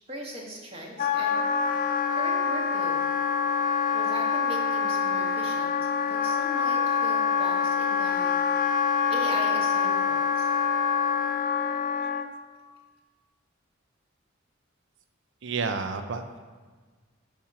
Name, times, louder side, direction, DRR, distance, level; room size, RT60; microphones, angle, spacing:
voice 1, 0.1-3.1 3.9-5.8 6.0-8.5 8.8-10.5, equal, 30° right, -1 dB, 1.5 m, -39 dB
Wind instrument woodwind instrument, 1.0-12.3, left 6 dB, 40° left, 0.4 m, -25 dB
voice 2, 15.4-16.4, right 4 dB, 65° right, 8 dB, 0.6 m, -30 dB
9.0 x 5.7 x 4.8 m, 1.4 s
head